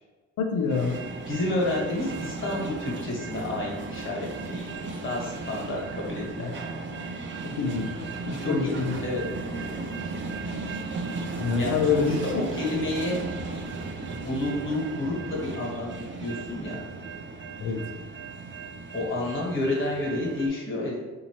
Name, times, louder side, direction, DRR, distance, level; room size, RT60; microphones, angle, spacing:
voice 1, 0.4-1.0 6.4-6.5 7.4-9.0 11.4-12.5 17.6-17.9, left 5 dB, 80° left, 3 dB, 0.7 m, -27 dB
sound 1, 0.7-20.5, right 3 dB, 40° right, 0.5 m, -35 dB
voice 2, 1.2-6.5 8.4-9.2 11.6-13.2 14.2-16.8 18.9-21.0, left 2 dB, 40° left, -3 dB, 1.5 m, -30 dB
4.0 x 2.7 x 2.9 m, 1.2 s
cardioid pair, 90°, 30 cm